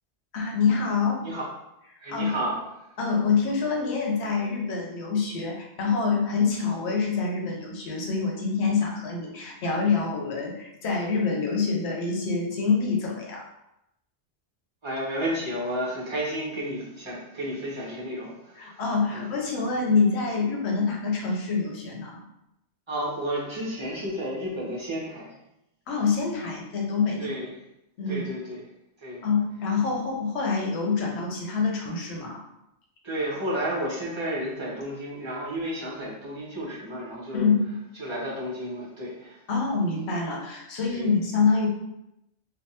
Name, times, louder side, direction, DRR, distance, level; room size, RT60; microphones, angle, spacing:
voice 1, 0.3-1.2 2.1-2.4 3.0-13.5 18.6-22.2 25.9-27.3 28.0-28.3 29.2-32.4 37.3-37.7 39.5-41.7, left 4 dB, 75° left, -1 dB, 1.0 m, -26 dB
voice 2, 2.0-2.6 14.8-18.8 19.1-19.3 22.9-25.4 27.2-27.6 28.1-28.6 29.0-29.2 33.0-37.5 38.0-39.4 40.9-41.1, right 1 dB, 25° right, -6 dB, 0.9 m, -32 dB
3.3 x 2.2 x 2.8 m, 0.86 s
omnidirectional pair, 1.1 m